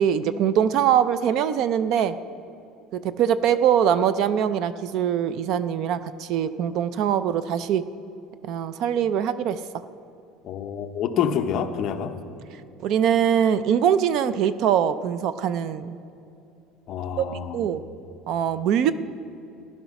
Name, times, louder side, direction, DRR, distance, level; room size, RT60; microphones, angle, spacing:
voice 1, 0.0-2.2 2.9-7.8 8.5-9.6 12.8-16.0 17.2-17.3 17.5-17.8 18.3-18.9, right 9 dB, 45° right, 14 dB, 0.4 m, -22 dB
voice 2, 10.4-12.2 16.9-17.7, left 8 dB, 35° left, 6 dB, 0.8 m, -27 dB
15.0 x 11.0 x 5.9 m, 2.7 s
cardioid pair, 175°, 0 cm